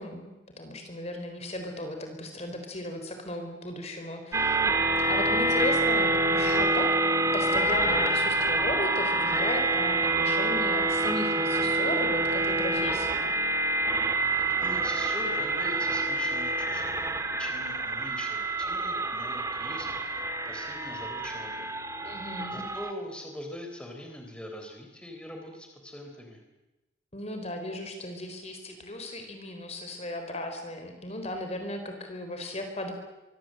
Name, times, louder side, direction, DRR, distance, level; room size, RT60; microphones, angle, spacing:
voice 1, 0.0-4.6 5.1-6.9 7.3-13.3 22.0-22.7 27.1-32.9, left 1 dB, 35° left, 5 dB, 4.0 m, -36 dB
sound 1, 4.3-22.9, right 2 dB, 15° right, 2.0 m, -27 dB
voice 2, 14.4-21.7 22.5-26.4, left 1 dB, 5° left, 2 dB, 3.8 m, -42 dB
25.0 x 24.5 x 7.8 m, 1.0 s
head